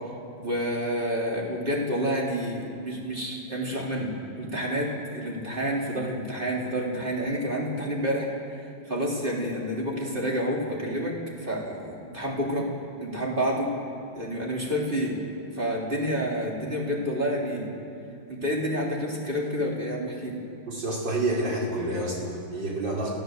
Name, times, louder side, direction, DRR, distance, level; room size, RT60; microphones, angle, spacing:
voice 1, 0.4-8.3 8.9-12.7 13.0-13.7 14.2-15.2 15.5-17.7 18.3-20.4, equal, 25° right, -2 dB, 3.6 m, -29 dB
voice 2, 20.7-23.1, right 2 dB, 55° right, -4 dB, 5.4 m, -28 dB
29.0 x 14.5 x 7.9 m, 2.8 s
omnidirectional pair, 2.4 m